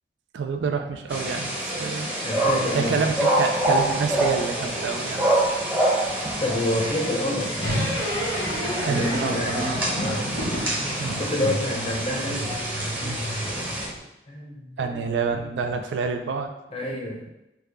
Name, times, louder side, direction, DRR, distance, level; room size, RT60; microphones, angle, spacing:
voice 1, 0.3-2.1 2.7-5.3 8.8-9.8 11.0-11.2 14.8-16.5, right 5 dB, 85° right, 6 dB, 0.4 m, -28 dB
sound 1, 1.1-13.9, right 1 dB, 10° right, 0.7 m, -26 dB
voice 2, 2.1-3.1 6.4-7.7 8.9-10.3 10.9-12.5 14.3-15.0 15.3-15.5 16.7-17.2, left 1 dB, 30° left, 0 dB, 0.6 m, -28 dB
sound 2, 7.6-14.0, equal, 85° left, 1.4 m, -31 dB
3.4 x 2.2 x 3.4 m, 0.92 s
head